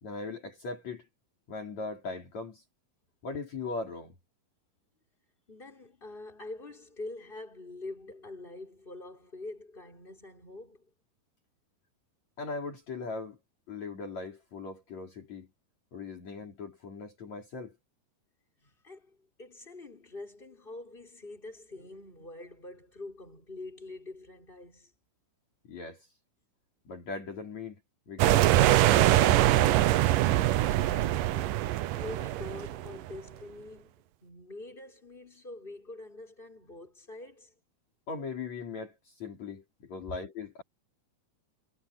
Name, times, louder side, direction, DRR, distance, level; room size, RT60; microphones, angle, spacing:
voice 1, 0.0-1.1 1.5-2.6 3.2-4.1 12.4-13.4 13.7-15.5 15.9-17.7 25.6-26.1 26.9-27.8 28.1-29.8 38.1-40.6, left 4 dB, 50° left, 4.8 m, -39 dB
voice 2, 5.5-10.9 18.6-24.9 30.6-37.5, left 2 dB, 15° left, 6.3 m, -45 dB
sound 1, 28.2-33.2, right 15 dB, 75° right, 2.3 m, -23 dB
omnidirectional pair, 4.2 m